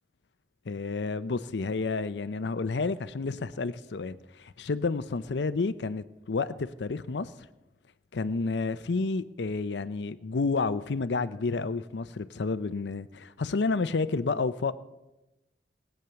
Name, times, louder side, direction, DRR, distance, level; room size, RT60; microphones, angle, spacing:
voice 1, 0.7-7.3 8.1-14.7, left 4 dB, 70° left, 14 dB, 0.6 m, -30 dB
20.0 x 9.2 x 6.9 m, 0.99 s
head